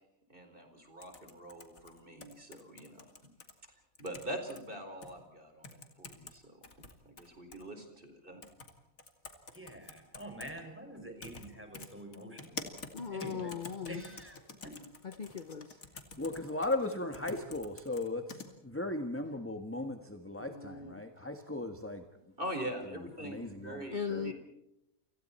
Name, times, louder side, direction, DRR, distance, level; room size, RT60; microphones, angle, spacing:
voice 1, 0.3-3.1 4.0-6.7 7.0-8.4 22.4-24.3, right 1 dB, 40° right, 4.6 m, -43 dB
sound 1, 1.0-3.5 3.9-4.6 5.0-5.1 5.6-6.3 6.6-7.6 8.4-8.7 9.0-10.5 11.2-11.5 11.7-18.5, left 3 dB, 75° left, 3.0 m, -47 dB
voice 2, 9.5-12.6 13.1-14.8, right 1 dB, 10° right, 5.8 m, -46 dB
voice 3, 12.9-14.0 15.0-15.8 20.4-21.0 23.9-24.3, left 7 dB, 40° left, 1.0 m, -39 dB
voice 4, 16.2-22.0 23.2-24.3, left 2 dB, 10° left, 1.5 m, -37 dB
29.5 x 27.5 x 4.4 m
omnidirectional pair, 1.4 m